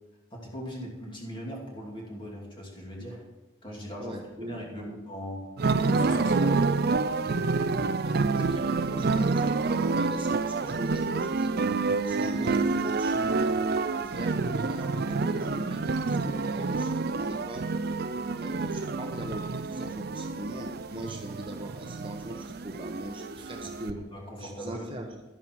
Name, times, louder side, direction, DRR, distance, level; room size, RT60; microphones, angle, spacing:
voice 1, 0.3-3.3 3.6-5.5 5.9-6.7 23.9-24.8, equal, 25° left, -2 dB, 2.7 m, -40 dB
voice 2, 4.0-5.0 7.2-11.5 12.0-13.5 14.0-17.6 18.4-24.0 24.4-25.2, right 1 dB, 25° right, 2 dB, 1.0 m, -40 dB
sound 1, 5.6-23.9, right 4 dB, 55° right, 0.5 m, -28 dB
12.0 x 11.0 x 4.7 m, 1.1 s
head